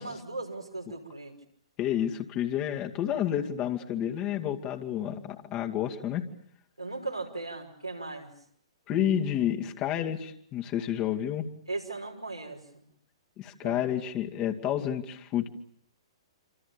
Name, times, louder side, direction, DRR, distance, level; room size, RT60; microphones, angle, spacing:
voice 1, 0.0-1.4 6.8-8.3 11.7-12.8 13.6-13.8, right 3 dB, 90° right, 0 dB, 5.6 m, -37 dB
voice 2, 1.8-6.2 8.9-11.5 13.4-15.5, left 10 dB, 30° left, 3 dB, 2.4 m, -30 dB
27.5 x 27.0 x 7.0 m, 0.66 s
figure-of-eight pair, 115°, 3 cm